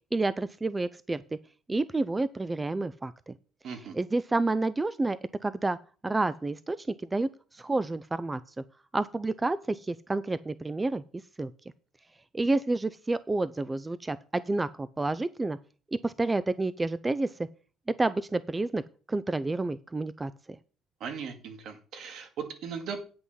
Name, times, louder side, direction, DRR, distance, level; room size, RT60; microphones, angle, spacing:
voice 1, 0.1-1.4 1.7-3.3 3.6-5.8 6.0-8.4 8.9-11.0 11.4-11.5 12.3-15.6 15.9-17.3 17.9-18.8 19.1-20.3, right 2 dB, 15° right, 16 dB, 0.4 m, -29 dB
voice 2, 3.6-3.9 21.0-23.0, right 6 dB, 65° right, 7 dB, 2.0 m, -38 dB
9.5 x 6.2 x 5.5 m, 0.39 s
cardioid pair, 105°, 0 cm